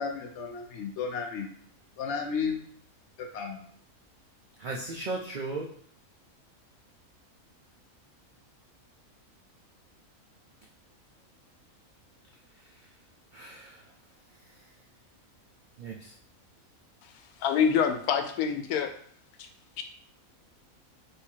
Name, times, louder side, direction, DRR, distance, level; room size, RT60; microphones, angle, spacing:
voice 1, 0.0-1.5 2.0-2.6 3.2-3.6, left 5 dB, 60° left, 4 dB, 0.8 m, -33 dB
voice 2, 4.6-5.7 12.5-12.9 13.3-13.9 14.3-14.7 15.8-16.2, right 3 dB, 75° right, -1 dB, 0.4 m, -38 dB
voice 3, 17.4-18.9 19.4-19.5 19.8-19.9, left 7 dB, 85° left, 7 dB, 1.1 m, -26 dB
3.4 x 2.7 x 4.5 m, 0.62 s
omnidirectional pair, 1.6 m